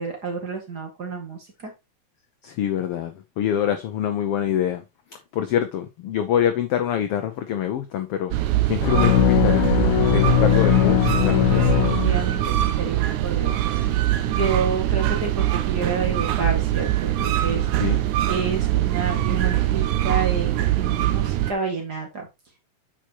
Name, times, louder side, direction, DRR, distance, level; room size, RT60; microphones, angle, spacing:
voice 1, 0.0-1.7 11.5-13.8 14.3-17.7 18.3-22.3, right 4 dB, 35° right, 2.2 m, -29 dB
voice 2, 2.4-4.8 5.3-8.3 8.7-11.7 17.8-18.0, left 10 dB, 75° left, 1.4 m, -25 dB
sound 1, 8.3-21.5, right 14 dB, 80° right, 2.1 m, -23 dB
sound 2, 8.8-12.7, left 17 dB, 90° left, 2.1 m, -20 dB
8.9 x 6.3 x 2.9 m
omnidirectional pair, 3.5 m